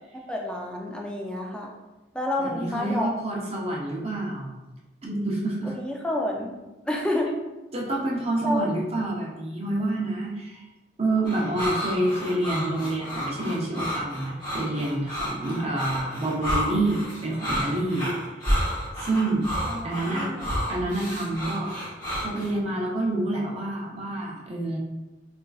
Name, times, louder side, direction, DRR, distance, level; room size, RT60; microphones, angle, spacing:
voice 1, 0.3-1.7 2.1-3.1 5.6-6.5 6.9-7.4 8.4-8.7 19.6-20.5, left 1 dB, 5° left, -1 dB, 0.4 m, -29 dB
voice 2, 2.4-4.5 5.0-5.7 7.7-10.6 11.0-18.1 19.0-19.5 19.8-20.3 20.7-21.8 22.2-24.8, right 2 dB, 35° right, -3 dB, 0.7 m, -28 dB
sound 1, 11.3-22.5, equal, 25° left, 0.9 m, -30 dB
4.3 x 2.4 x 2.3 m, 1.1 s
head